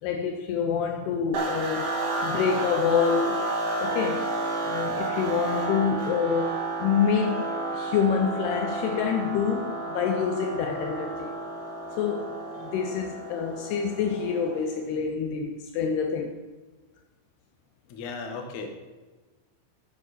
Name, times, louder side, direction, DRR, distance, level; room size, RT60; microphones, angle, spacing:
voice 1, 0.0-2.0 2.2-4.4 4.6-11.3 12.0-16.4, left 6 dB, 90° left, 2.3 m, -27 dB
sound 1, 1.3-14.7, right 2 dB, 45° right, 2.2 m, -31 dB
voice 2, 17.9-18.7, left 4 dB, 65° left, 1.9 m, -35 dB
13.0 x 10.0 x 4.3 m
omnidirectional pair, 5.6 m